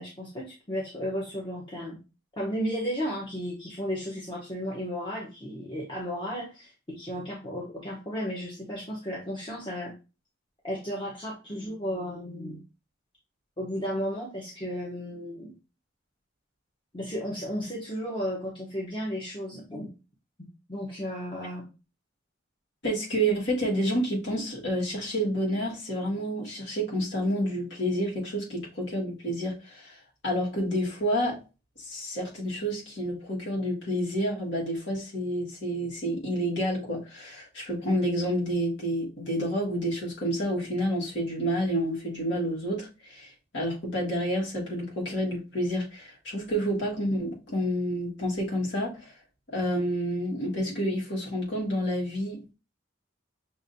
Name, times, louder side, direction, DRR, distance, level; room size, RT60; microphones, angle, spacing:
voice 1, 0.0-2.0 2.4-9.9 10.6-12.6 13.6-15.5 16.9-19.9 20.7-21.7, equal, 25° left, -4 dB, 1.0 m, -34 dB
voice 2, 22.8-29.9 30.2-31.4 31.8-49.1 49.5-52.4, equal, 65° left, -4 dB, 1.8 m, -29 dB
6.1 x 2.5 x 2.7 m, 0.30 s
head